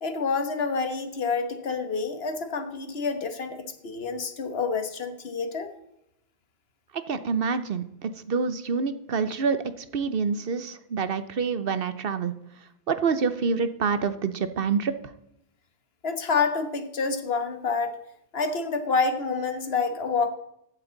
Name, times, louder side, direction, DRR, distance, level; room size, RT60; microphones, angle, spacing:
voice 1, 0.0-5.7 16.0-18.0 18.3-20.3, left 4 dB, 65° left, 8 dB, 1.5 m, -28 dB
voice 2, 7.1-12.3 12.9-14.9, right 5 dB, 60° right, 12 dB, 1.0 m, -27 dB
15.0 x 9.0 x 4.0 m, 0.82 s
omnidirectional pair, 1.1 m